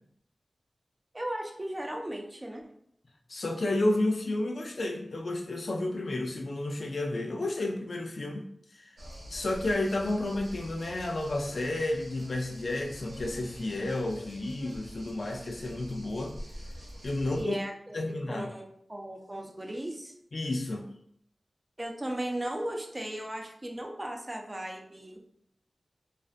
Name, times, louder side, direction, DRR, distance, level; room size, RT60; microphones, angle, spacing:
voice 1, 1.1-2.6 17.3-18.0 18.3-20.1 21.8-25.2, right 1 dB, 25° right, 2 dB, 0.4 m, -36 dB
voice 2, 3.3-8.5 8.7-8.9 9.3-16.3 17.0-17.5 17.9-18.5 20.3-20.9, left 2 dB, 70° left, 2 dB, 0.3 m, -31 dB
sound 1, 9.0-17.4, equal, 80° right, 0.6 m, -46 dB
2.4 x 2.1 x 2.4 m, 0.68 s
wide cardioid pair, 55°, 0 cm